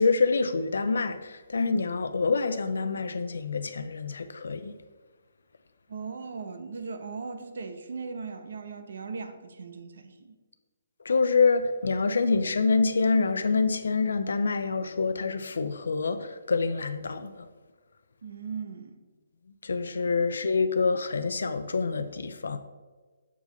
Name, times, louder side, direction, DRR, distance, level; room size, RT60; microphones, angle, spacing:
voice 1, 0.0-4.7 11.0-17.5 19.6-22.6, left 4 dB, 85° left, 0.5 m, -26 dB
voice 2, 5.9-10.4 18.2-19.0 20.0-20.1, right 5 dB, 65° right, 0.8 m, -38 dB
6.9 x 4.9 x 3.9 m
hypercardioid pair, 175°, 0 cm